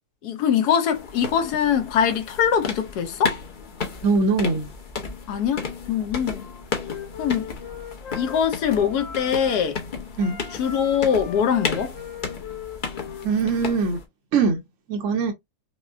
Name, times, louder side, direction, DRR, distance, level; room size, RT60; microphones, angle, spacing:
voice 1, 0.2-3.4 5.3-6.4 7.2-7.5 8.1-9.8 10.6-12.0, left 8 dB, 75° left, 1.2 m, -23 dB
sound 1, 0.9-14.0, left 5 dB, 45° left, 0.7 m, -34 dB
voice 2, 4.0-4.7 10.2-10.4 13.2-14.0 14.3-14.6 14.9-15.3, right 4 dB, 55° right, 1.0 m, -21 dB
Wind instrument woodwind instrument, 6.3-9.7 10.1-13.8, left 8 dB, 60° left, 1.0 m, -39 dB
5.2 x 2.1 x 2.5 m
omnidirectional pair, 1.7 m